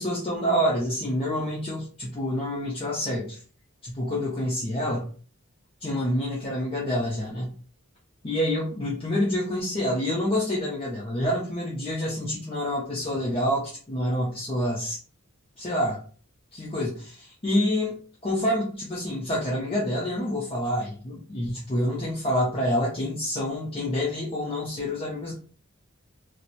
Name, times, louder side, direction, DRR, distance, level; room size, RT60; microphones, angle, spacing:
voice 1, 0.0-3.4 3.8-5.1 5.8-7.5 8.2-15.0 15.6-16.0 16.5-18.0 18.2-25.3, equal, 25° left, -6 dB, 0.6 m, -27 dB
2.8 x 2.0 x 2.5 m, 0.40 s
head